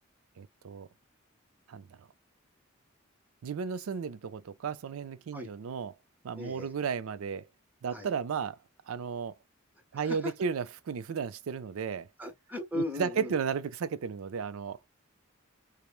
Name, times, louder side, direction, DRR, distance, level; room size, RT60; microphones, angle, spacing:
voice 1, 0.4-0.9 1.7-1.9 3.4-5.9 6.2-7.5 7.8-8.6 8.9-9.3 9.9-12.1 12.7-14.8, right 6 dB, 85° right, 0.4 m, -34 dB
voice 2, 6.4-6.7 7.9-8.1 9.9-10.3 12.2-13.3, left 1 dB, 10° right, 1.0 m, -36 dB
3.1 x 2.1 x 2.3 m
head